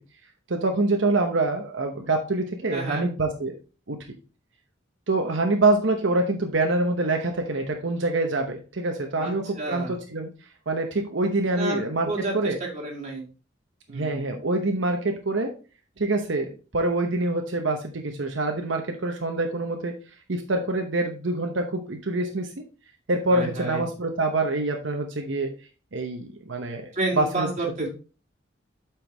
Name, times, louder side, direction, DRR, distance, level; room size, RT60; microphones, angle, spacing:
voice 1, 0.5-3.6 3.9-4.0 5.1-10.3 10.7-12.6 13.9-15.5 16.0-19.9 20.3-22.6 23.1-25.5 25.9-27.5 27.8-27.9, right 2 dB, 70° right, 3 dB, 0.9 m, -25 dB
voice 2, 2.7-3.1 9.2-10.0 11.5-13.2 13.9-14.2 23.3-23.8 26.9-27.9, right 2 dB, 40° right, -1 dB, 2.2 m, -30 dB
8.1 x 4.6 x 3.4 m, 0.35 s
head